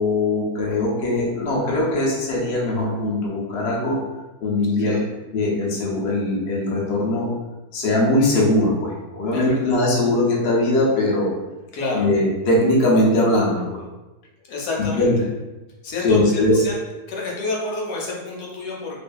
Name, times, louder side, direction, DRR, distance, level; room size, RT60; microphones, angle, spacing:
voice 1, 0.0-4.0 4.4-5.0 5.3-7.3 7.7-11.3 11.9-13.8 14.8-15.2 16.0-16.6, left 1 dB, 55° left, -5 dB, 0.7 m, -20 dB
voice 2, 9.3-9.8 11.7-12.1 14.4-15.1 15.8-16.8 17.1-19.0, left 2 dB, 80° left, -2 dB, 1.2 m, -29 dB
2.6 x 2.4 x 2.2 m, 1.1 s
omnidirectional pair, 1.7 m